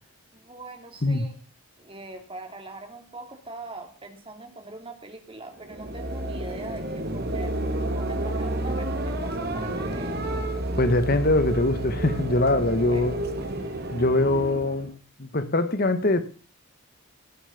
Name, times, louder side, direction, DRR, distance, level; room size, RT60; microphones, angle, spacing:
voice 1, 0.3-1.3 1.8-7.7 7.9-10.2 12.9-13.0 13.5-13.9, right 2 dB, 25° right, 2.6 m, -42 dB
sound 1, 5.5-14.9, right 1 dB, 50° right, 2.2 m, -30 dB
voice 2, 10.8-13.2 13.9-14.9 15.2-16.2, left 2 dB, 45° left, 1.2 m, -22 dB
18.5 x 7.0 x 7.1 m
head